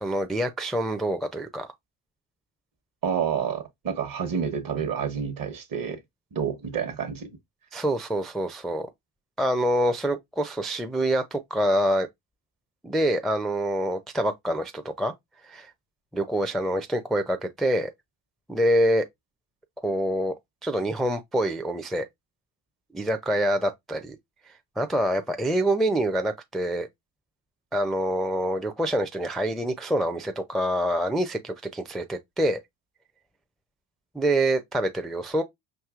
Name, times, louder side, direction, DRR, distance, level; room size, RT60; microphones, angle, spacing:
voice 1, 0.0-1.7 7.7-8.9 9.4-12.1 12.8-15.1 15.4-15.7 16.1-17.9 18.5-19.1 19.8-20.3 20.6-22.1 22.9-24.2 24.8-26.9 27.7-32.6 34.1-35.4, right 1 dB, ahead, 0.4 m, -26 dB
voice 2, 3.0-6.0 6.3-7.3, right 7 dB, 45° right, 1.1 m, -29 dB
4.7 x 2.7 x 2.4 m
hypercardioid pair, 55°, 47 cm